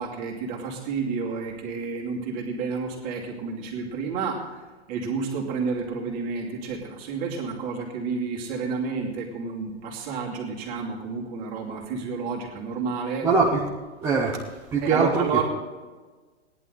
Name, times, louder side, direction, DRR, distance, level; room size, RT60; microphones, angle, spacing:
voice 1, 0.0-4.6 4.9-13.3 14.8-15.4, right 5 dB, 25° right, -1 dB, 2.4 m, -30 dB
voice 2, 13.2-13.6 14.0-15.4, right 4 dB, 5° right, -4 dB, 0.6 m, -23 dB
17.0 x 11.0 x 3.9 m, 1.3 s
hypercardioid pair, 170°, 35 cm